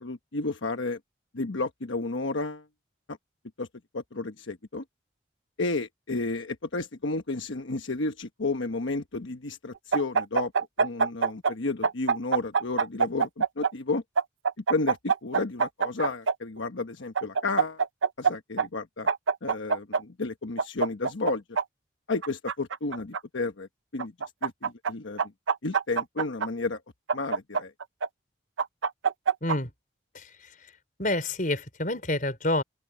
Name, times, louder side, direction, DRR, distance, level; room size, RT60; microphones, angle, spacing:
voice 1, 0.0-1.0 1.3-2.6 3.1-3.2 3.6-3.7 3.9-4.8 5.6-10.5 10.8-14.0 14.7-17.8 18.2-19.1 19.4-21.4 22.1-24.1 24.4-25.2 25.6-26.8 27.1-27.7, left 3 dB, 85° left, 1.1 m, -32 dB
sound 1, 9.9-11.5 11.8-13.7 14.2-16.3 17.2-18.3 18.6-18.7 19.1-20.0 20.6-21.6 22.2-23.2 24.0-24.9 25.2-26.5 27.1-28.1 28.6-29.6, right 6 dB, 85° right, 0.7 m, -24 dB
voice 2, 29.4-29.7 30.1-30.5 31.0-32.6, left 1 dB, 45° left, 5.3 m, -28 dB
open air
head